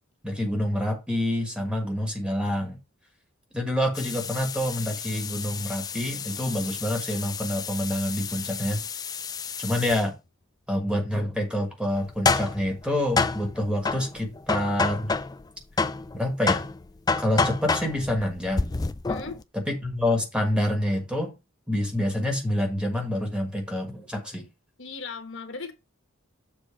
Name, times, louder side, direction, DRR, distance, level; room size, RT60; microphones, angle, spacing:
voice 1, 0.2-2.8 3.5-8.8 9.6-10.1 10.7-15.1 16.1-16.7 17.2-18.8 19.7-21.3 21.7-24.4, left 1 dB, 5° right, 1.3 m, -27 dB
sound 1, 3.9-10.1 12.0-15.5 15.8-19.4, left 4 dB, 15° left, 0.3 m, -29 dB
voice 2, 19.1-19.4 24.8-25.7, left 4 dB, 55° left, 1.3 m, -37 dB
7.2 x 3.9 x 5.5 m
head